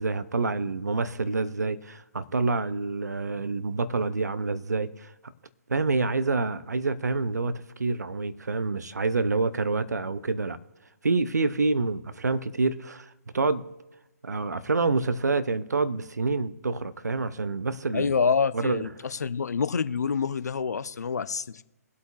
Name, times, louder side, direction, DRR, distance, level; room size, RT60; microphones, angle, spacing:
voice 1, 0.0-5.1 5.7-10.6 11.0-13.7 14.2-18.1 18.5-18.8, right 3 dB, 80° right, 0.7 m, -27 dB
voice 2, 17.9-21.6, left 5 dB, 75° left, 0.6 m, -27 dB
22.5 x 8.2 x 2.4 m
figure-of-eight pair, 135°, 9 cm